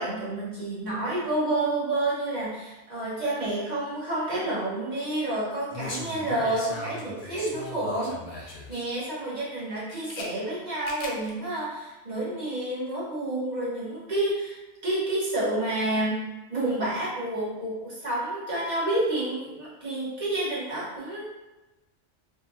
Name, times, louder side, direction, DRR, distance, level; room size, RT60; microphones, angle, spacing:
voice 1, 0.0-16.2 16.5-21.3, right 1 dB, 40° right, -9 dB, 1.1 m, -29 dB
sound 1, 5.7-8.9 9.6-10.3 10.8-11.3 11.6-11.7, left 1 dB, 60° left, 0.6 m, -38 dB
2.8 x 2.5 x 2.6 m, 1.1 s
omnidirectional pair, 1.2 m